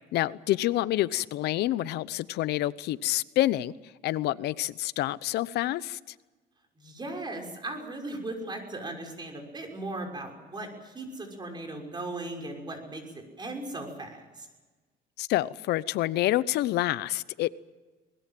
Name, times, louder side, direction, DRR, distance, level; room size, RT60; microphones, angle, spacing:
voice 1, 0.1-3.7 4.0-6.0 15.2-17.5, left 15 dB, 80° left, 0.9 m, -27 dB
voice 2, 6.8-13.0 13.4-14.5, right 2 dB, 25° right, 6.0 m, -37 dB
22.5 x 20.5 x 7.6 m
cardioid pair, 110°, 17 cm